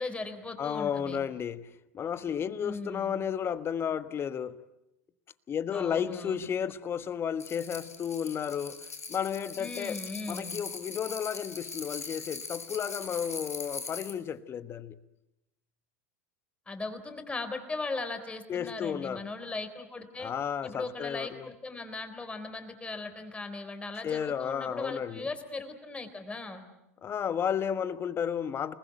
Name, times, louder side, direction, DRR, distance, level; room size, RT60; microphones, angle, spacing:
voice 1, 0.0-1.2 2.6-3.1 5.7-6.5 9.6-10.6 16.7-20.3 20.6-26.6, left 3 dB, 15° left, 3.9 m, -38 dB
voice 2, 0.6-4.6 5.5-10.0 10.3-15.0 18.5-19.2 20.2-21.5 24.0-25.3 27.0-28.7, left 8 dB, 30° left, 1.4 m, -33 dB
sound 1, 7.4-14.2, left 4 dB, 90° left, 2.3 m, -41 dB
28.5 x 20.0 x 9.1 m
hypercardioid pair, 85°, 8 cm